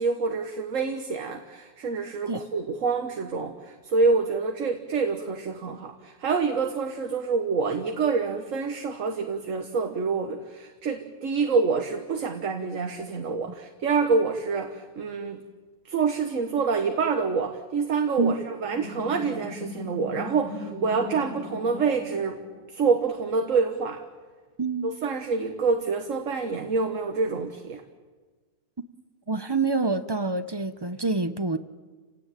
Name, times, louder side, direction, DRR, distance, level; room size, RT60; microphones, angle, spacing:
voice 1, 0.0-15.4 15.8-22.4 22.7-24.0 24.8-27.8, right 4 dB, 60° right, 6 dB, 1.6 m, -27 dB
sound 1, 18.6-23.0, left 2 dB, 80° left, 4.4 m, -39 dB
voice 2, 24.6-24.9 29.3-31.6, right 3 dB, 30° right, 12 dB, 0.5 m, -26 dB
29.5 x 17.0 x 9.1 m, 1.4 s
omnidirectional pair, 1.6 m